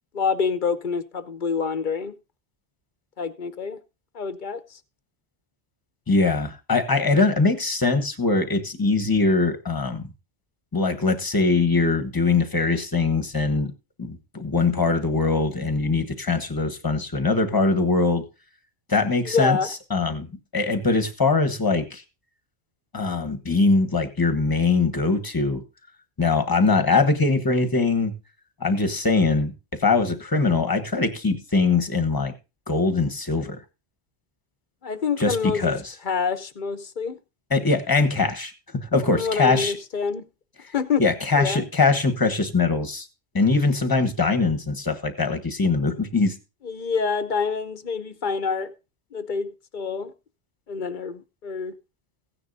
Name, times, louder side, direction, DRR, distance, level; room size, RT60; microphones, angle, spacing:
voice 1, 0.1-2.1 3.2-3.8 4.1-4.8 19.2-19.7 34.8-35.8 36.0-37.2 39.1-40.3 40.7-41.0 41.3-41.6 46.6-48.7 49.1-50.1 50.7-51.7, left 5 dB, 50° left, 0.8 m, -27 dB
voice 2, 6.1-10.1 10.7-13.7 14.0-18.2 18.9-22.0 22.9-25.6 26.2-28.1 28.6-29.5 29.8-32.3 32.7-33.6 35.2-35.9 37.5-39.7 41.0-43.1 43.3-46.4, left 3 dB, 20° left, 1.1 m, -22 dB
15.5 x 9.7 x 2.6 m
omnidirectional pair, 1.2 m